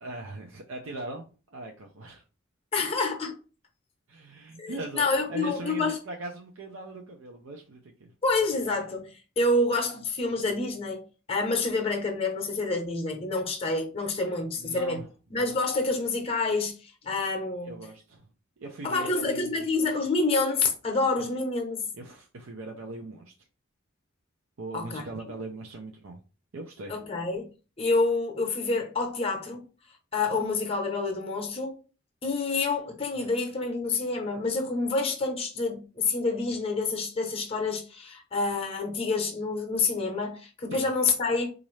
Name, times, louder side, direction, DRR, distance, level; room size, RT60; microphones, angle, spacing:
voice 1, 0.0-2.2 4.1-8.1 14.6-15.1 17.6-18.3 18.6-19.7 21.9-23.3 24.6-26.2 26.5-27.0 40.7-40.9, right 2 dB, 80° right, 0.5 m, -40 dB
voice 2, 2.7-3.4 4.6-6.0 8.2-15.0 15.3-17.9 18.8-21.8 24.7-25.0 26.9-27.5 27.8-29.6 30.1-31.7 32.2-41.5, left 3 dB, 30° left, 0.7 m, -28 dB
4.0 x 2.5 x 3.1 m
head